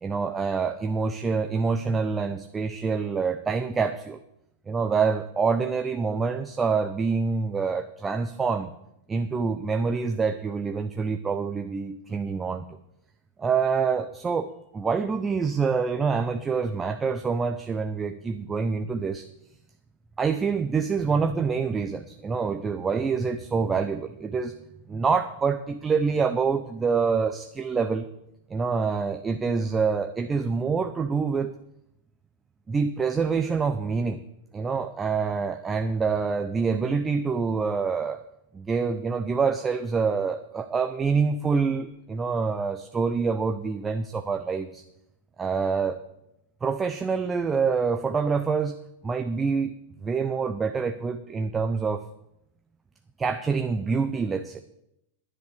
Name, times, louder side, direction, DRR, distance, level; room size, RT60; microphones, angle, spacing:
voice 1, 0.0-4.2 4.7-8.7 9.1-12.6 13.4-19.3 20.2-24.5 24.9-28.1 28.5-31.5 32.7-34.2 34.5-38.2 38.5-44.8 45.4-46.0 46.6-48.8 49.0-49.7 50.0-52.0 53.2-54.6, right 5 dB, 15° right, 9 dB, 0.7 m, -26 dB
10.5 x 10.0 x 6.6 m, 0.83 s
figure-of-eight pair, 90°, 0 cm